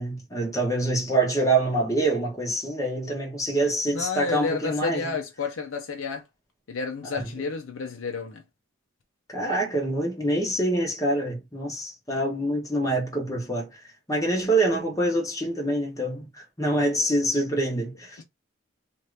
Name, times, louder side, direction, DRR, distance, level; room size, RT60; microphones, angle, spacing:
voice 1, 0.0-5.2 7.0-7.3 9.3-13.8 14.1-18.2, right 1 dB, 15° left, 1.0 m, -26 dB
voice 2, 3.9-6.2 6.7-8.4 18.2-18.3, left 4 dB, 70° left, 0.5 m, -31 dB
2.8 x 2.5 x 3.2 m
head